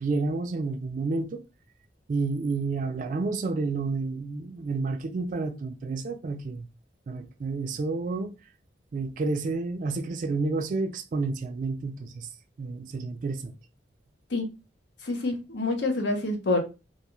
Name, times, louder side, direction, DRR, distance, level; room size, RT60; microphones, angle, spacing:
voice 1, 0.0-1.4 2.1-6.7 7.1-8.3 8.9-12.3 12.6-13.5, right 3 dB, 45° right, 0.3 m, -30 dB
voice 2, 15.1-16.6, left 2 dB, 75° left, 0.7 m, -27 dB
2.4 x 2.3 x 2.9 m
head